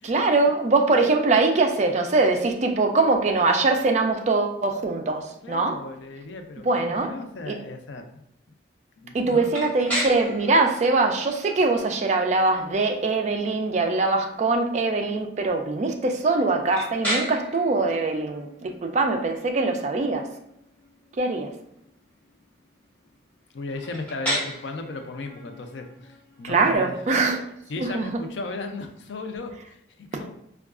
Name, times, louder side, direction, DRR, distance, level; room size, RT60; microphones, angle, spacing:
voice 1, 0.0-5.8 6.6-7.1 7.5-7.6 9.1-20.3 21.2-21.5 26.4-27.5 27.8-28.1, right 3 dB, 35° right, 4 dB, 0.3 m, -22 dB
voice 2, 5.4-8.2 9.0-9.5 23.5-27.0 27.7-30.3, left 3 dB, 75° left, 5 dB, 0.4 m, -36 dB
sound 1, 9.5-29.3, right 1 dB, 10° left, 0.8 m, -37 dB
4.5 x 2.3 x 2.4 m, 0.76 s
head